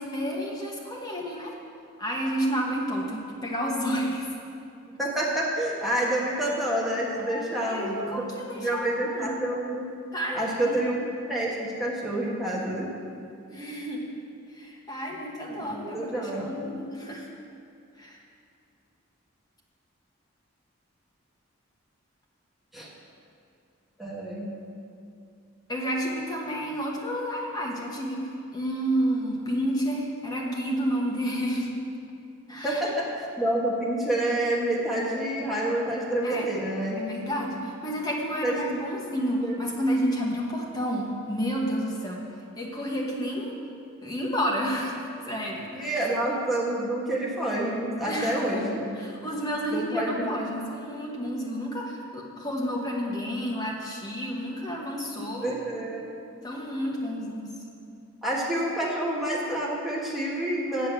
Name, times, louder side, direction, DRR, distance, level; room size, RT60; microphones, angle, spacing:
voice 1, 0.0-1.5 2.0-4.3 7.3-9.3 10.1-11.1 13.5-14.0 14.5-17.3 18.0-18.2 25.7-31.7 32.5-32.8 36.2-36.5 37.0-42.2 42.6-43.5 44.0-46.0 48.0-48.5 49.0-55.6 56.4-57.5, equal, 20° left, -3 dB, 1.2 m, -30 dB
voice 2, 5.0-9.9 10.3-12.9 15.5-16.7 22.7-22.9 24.0-24.5 32.6-37.0 38.4-38.6 39.4-39.5 45.7-48.8 49.7-50.6 55.4-56.1 58.2-60.9, right 1 dB, ahead, -6 dB, 1.4 m, -28 dB
7.9 x 6.4 x 8.0 m, 2.5 s
head